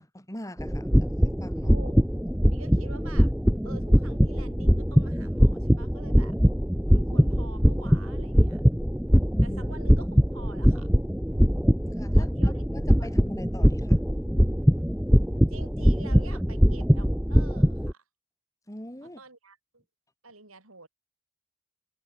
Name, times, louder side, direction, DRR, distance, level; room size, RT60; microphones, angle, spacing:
voice 1, 0.0-1.7 9.4-9.8 11.7-14.0 18.7-19.2, left 1 dB, 15° left, 7.5 m, -42 dB
sound 1, 0.6-17.9, equal, 5° right, 1.1 m, -22 dB
voice 2, 1.6-2.0 2.5-3.3 3.6-6.4 6.9-8.6 9.4-10.9 12.2-12.7 13.0-13.1 15.5-18.0 19.0-19.8 20.2-20.9, right 3 dB, 90° right, 7.8 m, -48 dB
head